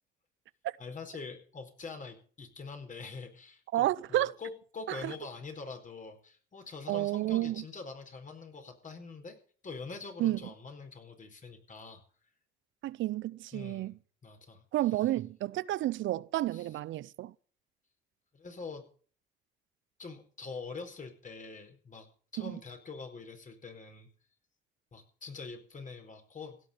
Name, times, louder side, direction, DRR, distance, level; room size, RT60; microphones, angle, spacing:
voice 1, 0.8-9.4 9.6-12.0 13.5-13.9 14.2-14.6 16.5-16.8 18.3-18.9 20.0-24.1 24.9-26.7, left 4 dB, 40° left, 4.5 m, -44 dB
voice 2, 3.7-4.3 4.9-5.1 6.9-7.6 10.2-10.4 12.8-13.9 14.7-17.3 22.4-22.6, right 15 dB, 80° right, 0.6 m, -31 dB
16.5 x 6.4 x 8.9 m
cardioid pair, 90°, 20 cm